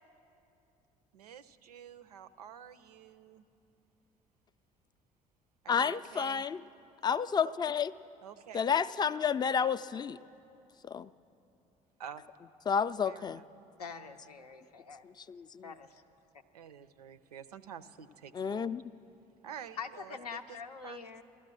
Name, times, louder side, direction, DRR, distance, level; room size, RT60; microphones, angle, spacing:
voice 1, 1.1-3.4 5.6-6.4 8.2-8.7 9.9-10.0 12.0-12.2 13.1-13.4 16.5-18.8 19.4-20.2 20.5-20.6 20.8-21.1, right 8 dB, 80° right, 13 dB, 0.5 m, -49 dB
voice 2, 5.7-6.6 7.0-7.9 8.5-10.2 10.8-11.1 12.7-13.4 15.0-15.7 18.3-18.8, left 7 dB, 20° left, 15 dB, 0.4 m, -31 dB
voice 3, 13.8-15.0 15.6-16.0 19.8-21.2, left 5 dB, 85° left, 7 dB, 0.6 m, -44 dB
16.0 x 12.5 x 6.2 m, 2.8 s
figure-of-eight pair, 55°, 19 cm